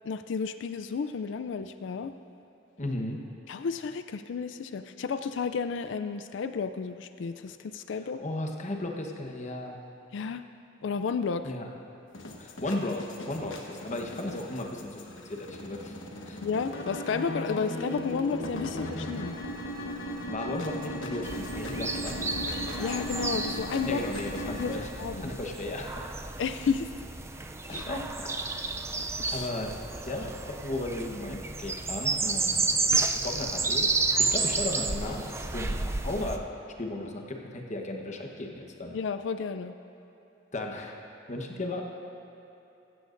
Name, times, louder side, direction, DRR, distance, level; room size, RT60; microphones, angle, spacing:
voice 1, 0.0-2.1 3.5-8.2 10.1-10.4 10.8-11.5 16.4-19.4 22.8-24.0 24.6-25.3 26.4-26.9 27.7-27.9 29.0-29.5 38.9-39.7, left 5 dB, 70° left, 10 dB, 0.4 m, -32 dB
voice 2, 2.8-3.2 7.9-9.8 11.4-11.7 12.4-15.9 16.2-16.4 20.1-22.3 23.8-25.9 27.4-28.3 29.3-29.7 30.1-32.6 33.2-33.9 34.2-36.5 36.8-39.0 40.5-41.0 41.3-41.8, left 1 dB, 40° left, 1 dB, 1.1 m, -35 dB
sound 1, 12.1-24.8, left 1 dB, 85° left, 1.2 m, -37 dB
sound 2, 21.2-36.4, right 3 dB, 15° right, 0.4 m, -31 dB
15.0 x 14.5 x 2.6 m, 3.0 s
head